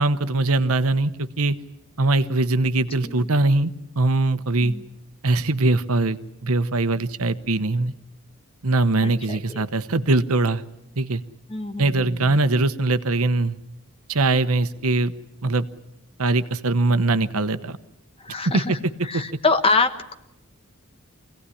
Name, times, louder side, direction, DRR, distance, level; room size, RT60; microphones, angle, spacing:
voice 1, 0.0-1.6 2.0-4.7 5.2-7.9 8.6-10.6 11.0-11.2 11.8-13.6 14.1-15.1 15.4-15.6 16.2-17.8 18.5-18.8 19.1-19.2, right 2 dB, 75° right, 12 dB, 1.0 m, -21 dB
voice 2, 9.0-9.6 11.5-12.4 18.2-18.8 19.0-20.1, left 3 dB, 25° left, 8 dB, 1.3 m, -25 dB
25.0 x 17.0 x 10.0 m, 0.85 s
head